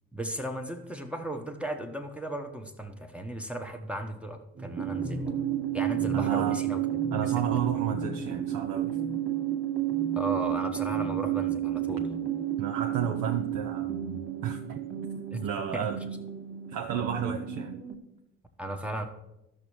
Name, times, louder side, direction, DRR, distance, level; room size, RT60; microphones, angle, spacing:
voice 1, 0.1-5.5 5.7-6.8 7.2-7.6 10.1-12.1 15.3-15.5 15.7-15.9 18.6-19.1, right 1 dB, 5° right, 3 dB, 1.0 m, -36 dB
sound 1, 4.6-17.9, right 10 dB, 25° right, 1.6 m, -31 dB
voice 2, 6.1-6.6 7.1-9.0 12.6-14.8 15.4-16.0 16.7-17.8, right 8 dB, 50° right, 3 dB, 0.6 m, -32 dB
14.5 x 6.0 x 3.0 m, 0.92 s
figure-of-eight pair, 45°, 45 cm